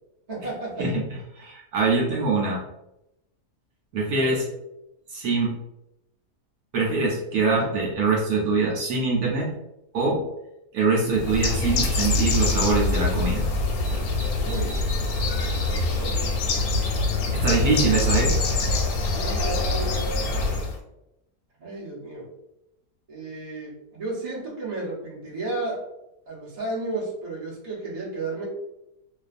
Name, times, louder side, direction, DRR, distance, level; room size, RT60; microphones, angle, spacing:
voice 1, 0.3-0.7 2.1-2.2 4.2-4.4 14.4-14.8 15.6-16.2 17.4-17.9 19.1-20.6 21.6-22.2 23.1-25.8 26.3-28.5, right 2 dB, 35° right, -6 dB, 0.6 m, -33 dB
voice 2, 1.4-2.6 3.9-4.4 5.1-5.5 6.7-9.5 9.9-10.2 10.7-13.5 17.3-18.5, right 3 dB, 70° right, -2 dB, 1.0 m, -23 dB
Bird, 11.1-20.8, left 2 dB, 70° left, 0.9 m, -24 dB
2.5 x 2.4 x 2.4 m, 0.87 s
omnidirectional pair, 1.7 m